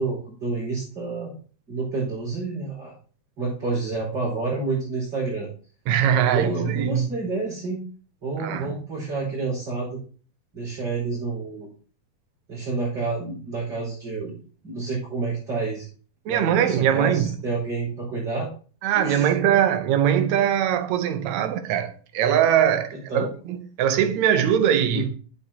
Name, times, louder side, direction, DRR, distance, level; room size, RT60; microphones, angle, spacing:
voice 1, 0.0-1.3 1.7-2.9 3.4-5.5 6.2-7.8 8.2-10.0 10.5-11.7 12.5-14.4 14.6-15.9 16.3-18.5 18.9-19.3 22.9-23.3 24.9-25.1, right 3 dB, 35° right, 5.3 m, -29 dB
voice 2, 5.9-7.1 8.4-8.7 16.3-17.3 18.8-25.1, right 9 dB, 70° right, 1.8 m, -21 dB
10.5 x 8.2 x 2.9 m
omnidirectional pair, 3.9 m